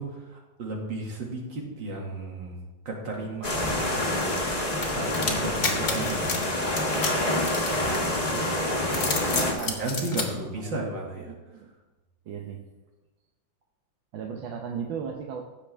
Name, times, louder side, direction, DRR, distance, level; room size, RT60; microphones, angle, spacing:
voice 1, 0.0-2.6 2.9-4.4 4.9-11.3, right 2 dB, 70° right, -1 dB, 2.6 m, -35 dB
sound 1, 3.4-9.5, left 1 dB, 20° left, 1.5 m, -27 dB
sound 2, 4.8-8.3 8.8-10.3, left 4 dB, 50° left, 1.9 m, -30 dB
voice 2, 9.2-10.2 11.3-11.7 12.3-12.6 14.1-15.4, right 6 dB, 85° right, 2 dB, 1.6 m, -36 dB
16.0 x 6.8 x 3.4 m, 1.1 s
omnidirectional pair, 2.1 m